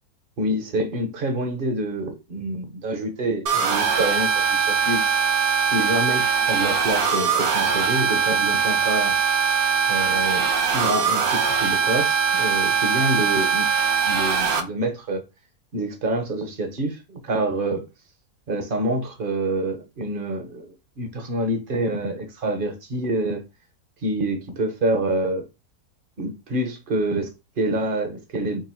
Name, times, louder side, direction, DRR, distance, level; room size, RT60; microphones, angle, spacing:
voice 1, 0.4-5.2 5.7-9.4 9.9-13.7 14.0-15.2 15.7-17.8 18.5-23.4 24.0-25.5 26.2-28.7, right 1 dB, 40° right, 0.8 m, -27 dB
sound 1, 3.5-14.6, right 6 dB, 70° right, 1.2 m, -21 dB
3.8 x 2.5 x 4.3 m
omnidirectional pair, 1.7 m